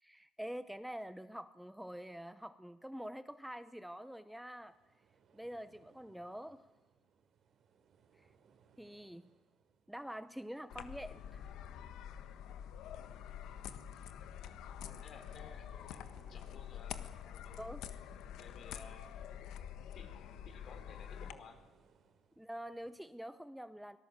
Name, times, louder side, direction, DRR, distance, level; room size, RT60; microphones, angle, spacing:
voice 1, 0.0-4.8 5.3-6.7 8.2-8.3 8.8-9.3 9.9-11.5 17.6-17.9 22.4-24.0, equal, ahead, 12 dB, 0.7 m, -46 dB
sound 1, 4.6-23.0, right 6 dB, 55° right, 3.1 m, -70 dB
sound 2, 10.7-21.3, left 9 dB, 80° left, 1.4 m, -47 dB
voice 2, 14.8-15.7 16.3-17.6 18.4-19.1 19.9-21.6, left 5 dB, 55° left, 7 dB, 4.1 m, -56 dB
25.0 x 19.0 x 7.5 m, 1.2 s
cardioid pair, 115°, 0 cm